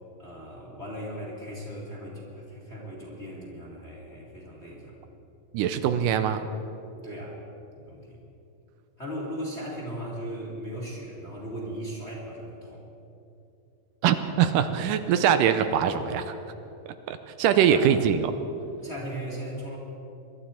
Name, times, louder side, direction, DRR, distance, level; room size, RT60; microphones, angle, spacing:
voice 1, 0.2-5.0 7.0-7.4 7.8-8.2 9.0-12.9 17.7-17.8 18.8-19.8, equal, 25° left, -4 dB, 2.1 m, -37 dB
voice 2, 5.5-6.5 14.0-16.3 17.1-18.3, right 9 dB, 80° right, 9 dB, 2.2 m, -23 dB
23.5 x 12.0 x 4.4 m, 2.8 s
omnidirectional pair, 3.8 m